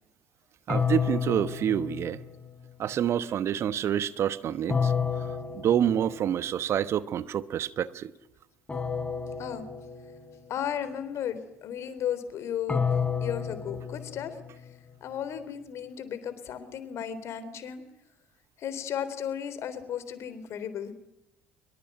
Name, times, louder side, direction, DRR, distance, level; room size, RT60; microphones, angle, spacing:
sound 1, 0.7-2.7 4.7-6.5 8.7-10.5 12.7-14.9, left 6 dB, 20° left, 3.3 m, -31 dB
voice 1, 0.7-2.2 2.8-4.9 5.5-8.1, right 9 dB, 50° right, 1.1 m, -27 dB
voice 2, 10.5-14.4 15.0-17.8 18.6-20.9, left 9 dB, 50° left, 3.6 m, -35 dB
24.5 x 22.5 x 9.2 m
figure-of-eight pair, 55°, 6 cm